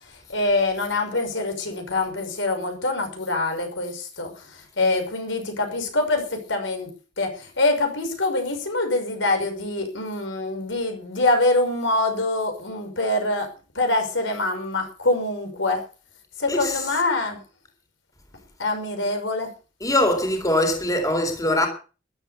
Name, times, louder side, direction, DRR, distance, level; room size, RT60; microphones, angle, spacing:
voice 1, 0.0-6.9 7.2-15.8 16.4-17.4 18.6-19.5, left 2 dB, 75° left, 5.9 m, -25 dB
voice 2, 19.8-21.7, left 1 dB, 20° left, 3.8 m, -22 dB
14.0 x 11.5 x 6.8 m
head